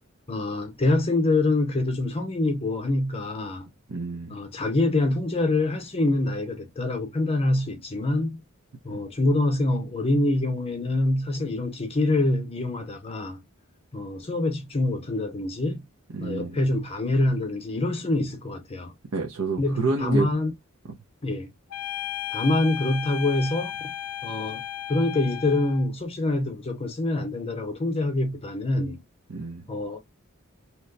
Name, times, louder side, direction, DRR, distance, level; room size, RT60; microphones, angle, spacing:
voice 1, 0.3-3.7 4.3-8.4 8.8-13.4 13.9-15.8 16.2-18.9 19.6-20.5 21.2-21.5 22.3-23.9 24.2-24.6 24.9-29.0 29.7-30.0, left 2 dB, 30° left, 0.7 m, -25 dB
voice 2, 3.9-4.4 8.9-9.0 16.1-16.6 19.1-20.3 29.3-29.6, right 3 dB, 85° right, 0.6 m, -29 dB
sound 1, 21.7-25.9, left 11 dB, 90° left, 0.6 m, -34 dB
2.9 x 2.1 x 3.8 m
head